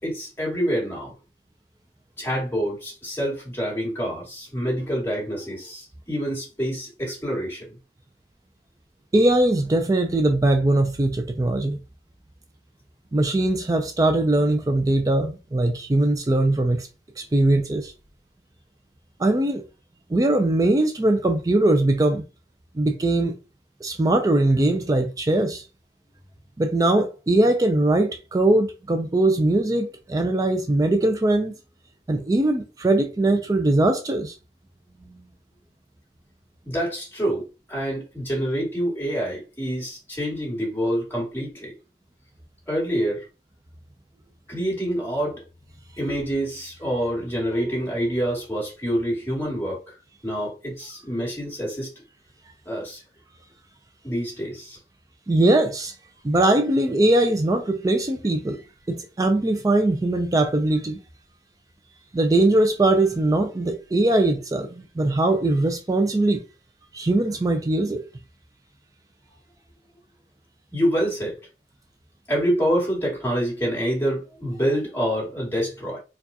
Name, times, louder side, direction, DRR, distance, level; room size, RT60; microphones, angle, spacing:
voice 1, 0.0-1.1 2.2-7.7 35.0-35.3 36.6-41.7 42.7-43.2 44.5-45.4 46.0-49.8 50.2-51.9 52.7-53.0 54.0-54.8 70.7-71.3 72.3-76.0, equal, 15° left, 2.2 m, -27 dB
voice 2, 9.1-11.8 13.1-16.9 17.2-17.9 19.2-19.6 20.1-22.2 22.8-23.3 23.8-25.6 26.6-31.5 32.1-34.3 55.3-55.9 56.2-58.6 58.9-61.0 62.1-66.4 66.9-68.0, right 2 dB, 20° right, 0.4 m, -21 dB
4.5 x 2.4 x 2.7 m
head